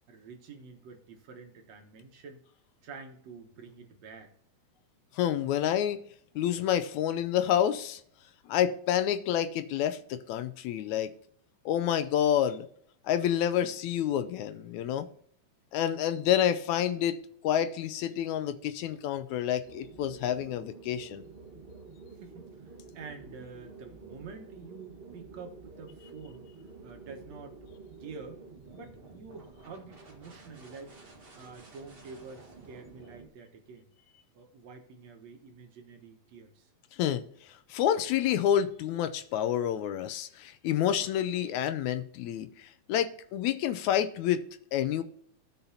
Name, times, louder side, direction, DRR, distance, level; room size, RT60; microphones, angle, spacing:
voice 1, 0.1-2.4 2.8-4.3 22.1-27.7 28.0-28.4 28.7-30.9 31.4-33.9 34.3-36.7, right 4 dB, 65° right, 3 dB, 2.3 m, -48 dB
voice 2, 5.2-6.0 6.4-8.0 8.5-11.1 11.7-12.7 13.1-15.1 15.7-21.2 37.0-37.2 37.7-44.4 44.7-45.0, left 10 dB, 80° left, 11 dB, 1.9 m, -28 dB
sound 1, 19.6-33.3, right 4 dB, 35° right, 0.9 m, -50 dB
16.0 x 5.6 x 2.7 m, 0.64 s
omnidirectional pair, 3.5 m